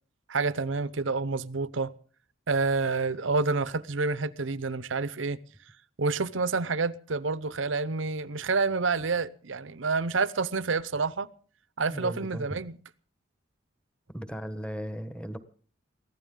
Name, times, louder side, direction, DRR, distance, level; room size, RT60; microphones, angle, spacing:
voice 1, 0.3-1.9 2.5-5.4 6.0-11.3 11.8-12.8, right 4 dB, 75° right, 0.8 m, -28 dB
voice 2, 11.9-12.5 14.1-15.4, equal, 5° left, 1.3 m, -36 dB
23.0 x 16.0 x 3.8 m
head